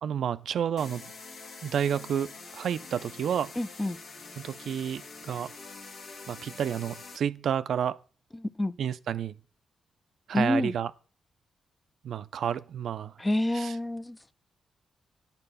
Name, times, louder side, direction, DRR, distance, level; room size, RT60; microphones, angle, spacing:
voice 1, 0.0-1.0 1.6-3.5 4.4-5.5 6.3-8.0 8.8-9.3 10.3-10.9 12.0-13.1 13.5-13.8, right 8 dB, 75° right, 0.4 m, -30 dB
sound 1, 0.8-7.2, left 4 dB, 70° left, 1.6 m, -45 dB
voice 2, 3.6-4.0 8.4-8.8 10.3-10.7 13.2-14.2, left 1 dB, 20° left, 0.5 m, -28 dB
9.9 x 6.7 x 5.4 m
cardioid pair, 70°, 0 cm